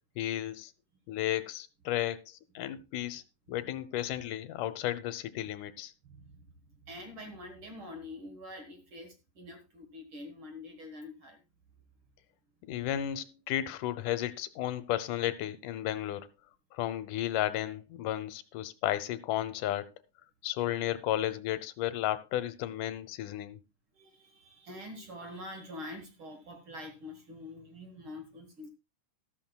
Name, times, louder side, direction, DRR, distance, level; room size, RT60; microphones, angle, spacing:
voice 1, 0.2-0.7 1.1-3.2 3.5-5.9 12.7-16.3 16.7-19.9 20.4-23.6, left 13 dB, 80° left, 2.4 m, -33 dB
voice 2, 6.0-6.5 6.9-11.4 23.9-28.7, left 1 dB, 50° right, 1.9 m, -45 dB
13.5 x 13.0 x 2.3 m
omnidirectional pair, 3.7 m